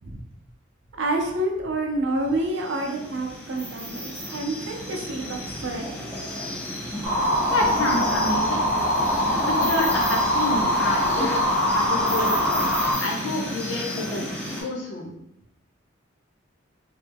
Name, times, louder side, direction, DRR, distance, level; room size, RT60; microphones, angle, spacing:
voice 1, 1.0-5.9, right 1 dB, 65° right, 1 dB, 0.6 m, -28 dB
sound 1, 2.4-14.6, equal, 10° left, 1.2 m, -32 dB
sound 2, 7.0-12.9, equal, 10° right, 0.9 m, -23 dB
voice 2, 7.4-8.6 9.2-11.4 11.7-12.5 13.0-15.1, left 2 dB, 70° left, 0 dB, 0.7 m, -29 dB
3.2 x 2.3 x 3.4 m, 0.80 s
head